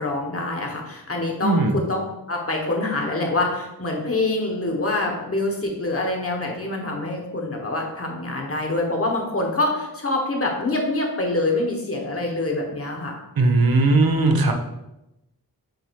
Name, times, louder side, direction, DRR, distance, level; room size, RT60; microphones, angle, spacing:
voice 1, 0.0-2.0 2.3-13.1, left 2 dB, 40° left, 0 dB, 1.3 m, -25 dB
voice 2, 1.4-1.8 13.4-14.5, right 3 dB, 70° right, 4 dB, 0.9 m, -18 dB
7.7 x 2.7 x 4.6 m, 0.91 s
wide cardioid pair, 105°, 37 cm